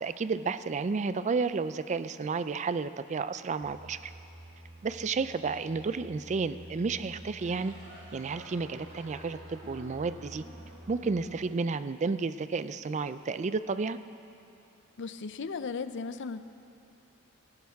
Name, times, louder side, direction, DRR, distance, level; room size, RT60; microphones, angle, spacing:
voice 1, 0.0-4.1 4.8-7.7 8.1-10.4 10.9-14.0, right 4 dB, 35° right, 13 dB, 0.4 m, -31 dB
sound 1, 3.6-11.3, right 1 dB, 55° right, 3.0 m, -50 dB
sound 2, 7.3-12.6, right 1 dB, 75° right, 4.2 m, -52 dB
voice 2, 15.0-16.4, left 4 dB, 55° left, 12 dB, 0.5 m, -36 dB
17.5 x 17.0 x 3.5 m, 2.7 s
head